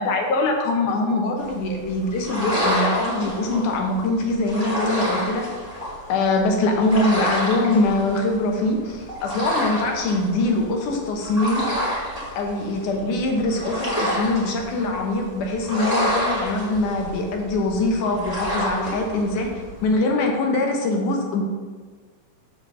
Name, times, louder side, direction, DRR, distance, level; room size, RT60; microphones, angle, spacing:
voice 1, 0.0-5.5 6.1-11.7 12.4-19.5 19.8-21.4, left 2 dB, 70° left, 2 dB, 2.3 m, -23 dB
sound 1, 1.4-19.9, equal, 15° left, 1.6 m, -29 dB
6.2 x 5.2 x 6.4 m, 1.5 s
omnidirectional pair, 4.1 m